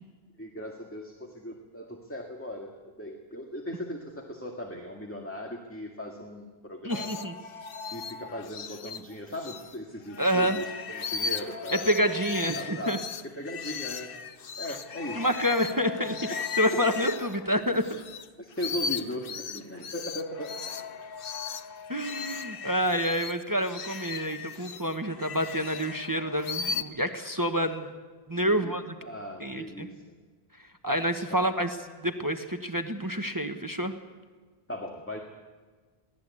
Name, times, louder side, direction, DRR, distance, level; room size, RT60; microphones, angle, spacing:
voice 1, 0.4-7.3 7.9-12.2 12.6-14.1 14.6-15.3 18.4-20.7 28.3-28.7 29.0-30.2 31.3-31.5 34.7-35.2, equal, 10° left, 1 dB, 1.9 m, -38 dB
voice 2, 6.8-7.3 10.2-10.6 11.7-13.0 14.7-14.8 15.1-18.0 21.9-27.9 28.3-28.8 29.4-29.9 30.8-33.9, equal, 20° right, 6 dB, 1.2 m, -28 dB
sound 1, 6.9-9.8 10.1-18.3 18.5-26.8, left 6 dB, 60° left, 1.0 m, -37 dB
23.5 x 17.0 x 8.5 m, 1.4 s
omnidirectional pair, 1.1 m